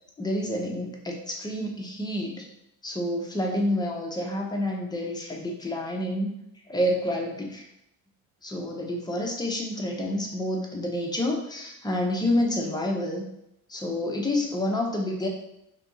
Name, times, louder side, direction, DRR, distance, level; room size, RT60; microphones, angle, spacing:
voice 1, 0.2-2.5 2.8-6.4 6.7-7.7 8.4-13.2 13.7-15.3, left 1 dB, 10° left, 0 dB, 0.6 m, -28 dB
2.9 x 2.5 x 3.9 m, 0.81 s
cardioid pair, 100°, 40 cm